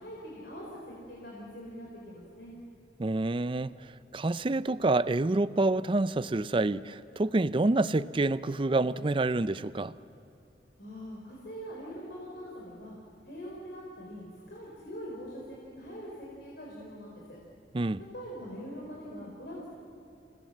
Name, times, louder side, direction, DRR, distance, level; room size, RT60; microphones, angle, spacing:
voice 1, 0.0-2.5 10.8-12.9 13.2-17.4 18.1-19.7, equal, 70° left, 4.4 m, -43 dB
voice 2, 3.0-3.7 4.1-9.9 17.7-18.0, right 2 dB, 30° right, 0.5 m, -27 dB
28.5 x 18.5 x 7.7 m
head